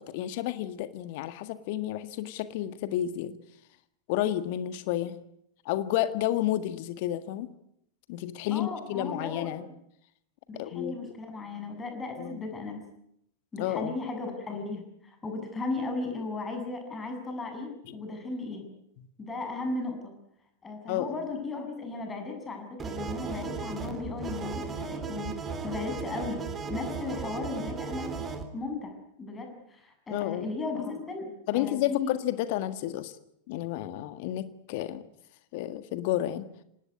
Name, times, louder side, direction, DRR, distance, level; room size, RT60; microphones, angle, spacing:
voice 1, 0.1-3.4 4.1-5.1 5.6-7.5 8.1-9.6 10.5-11.1 12.2-12.4 13.6-14.0 17.9-18.0 19.0-19.1 20.9-21.2 30.1-30.5 31.5-33.1 33.5-35.0 35.5-36.5, left 13 dB, 50° left, 12 dB, 1.7 m, -31 dB
voice 2, 8.5-9.5 10.5-12.8 13.5-18.7 19.2-20.2 20.6-25.4 25.6-28.1 28.5-28.9 29.2-32.1, left 3 dB, 15° left, 4 dB, 7.5 m, -36 dB
sound 1, 22.8-28.4, right 5 dB, 20° right, 3.4 m, -36 dB
25.5 x 19.0 x 9.8 m, 0.77 s
figure-of-eight pair, 90°, 0 cm